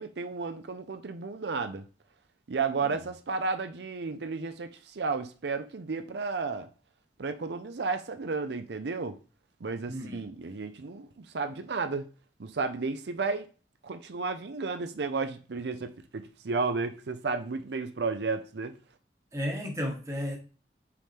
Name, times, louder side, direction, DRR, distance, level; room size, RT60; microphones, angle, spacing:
voice 1, 0.0-1.9 2.5-6.7 7.2-9.2 9.6-12.0 12.4-13.5 13.8-18.7, right 4 dB, 80° right, 0.6 m, -33 dB
voice 2, 9.9-10.3 19.3-20.4, equal, 15° right, 1.2 m, -34 dB
6.2 x 3.6 x 4.3 m
head